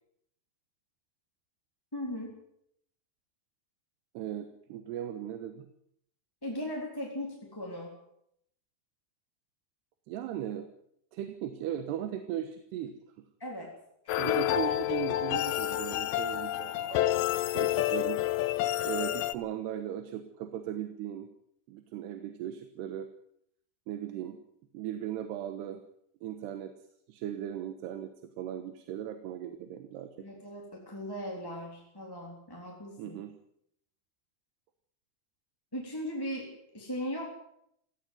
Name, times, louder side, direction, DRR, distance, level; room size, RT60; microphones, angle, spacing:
voice 1, 1.9-2.3 6.4-7.9 13.4-13.7 14.0-14.5 30.2-33.2 35.7-37.3, equal, 5° left, -1 dB, 3.2 m, -38 dB
voice 2, 4.1-5.7 10.1-10.7 11.1-13.2 14.2-18.2 18.8-21.3 21.7-23.1 23.9-24.4 24.7-25.8 26.2-26.7 27.1-28.1 28.4-30.3 33.0-33.3, right 10 dB, 85° right, 9 dB, 3.3 m, -38 dB
sound 1, 14.1-19.3, left 14 dB, 75° left, 2.1 m, -29 dB
17.0 x 16.5 x 9.6 m, 0.73 s
omnidirectional pair, 4.7 m